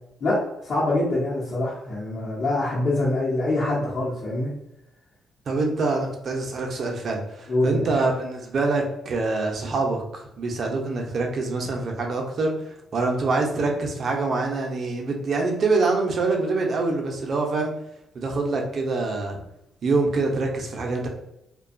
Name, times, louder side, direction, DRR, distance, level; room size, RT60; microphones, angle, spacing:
voice 1, 0.2-4.5 7.5-7.9, left 2 dB, 55° left, -9 dB, 0.8 m, -25 dB
voice 2, 5.5-17.7 18.1-19.4 19.8-21.1, right 3 dB, 55° right, 1 dB, 0.6 m, -25 dB
2.5 x 2.2 x 2.5 m, 0.85 s
cardioid pair, 90°, 0 cm